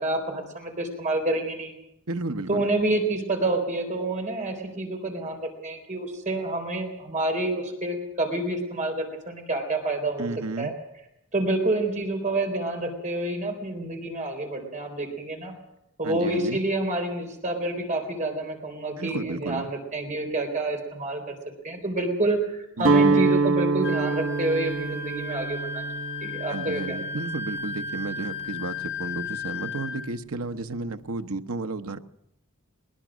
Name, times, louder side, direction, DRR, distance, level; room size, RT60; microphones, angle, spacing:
voice 1, 0.0-1.7 2.5-10.3 10.6-10.7 11.3-15.5 16.0-21.4 21.6-25.9 26.2-27.0, right 2 dB, 35° right, 3 dB, 3.8 m, -28 dB
voice 2, 2.1-2.7 10.2-10.7 16.0-16.6 19.0-19.7 22.8-23.3 26.5-32.0, right 3 dB, 85° right, 9 dB, 1.1 m, -32 dB
Guitar, 22.8-28.8, right 3 dB, 65° right, 1.0 m, -26 dB
Wind instrument woodwind instrument, 23.8-30.1, left 4 dB, 60° left, 5.1 m, -35 dB
21.5 x 21.0 x 6.3 m, 0.83 s
head